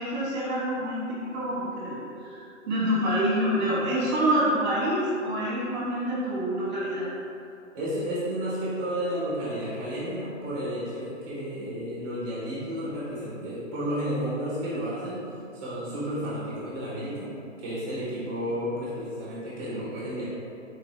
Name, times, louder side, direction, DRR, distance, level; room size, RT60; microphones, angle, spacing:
voice 1, 0.0-7.1, equal, 35° right, -7 dB, 1.3 m, -27 dB
voice 2, 7.7-15.2 15.5-17.3 17.6-20.3, equal, 15° right, -10 dB, 1.1 m, -32 dB
4.0 x 2.6 x 3.2 m, 2.6 s
hypercardioid pair, 155°, 39 cm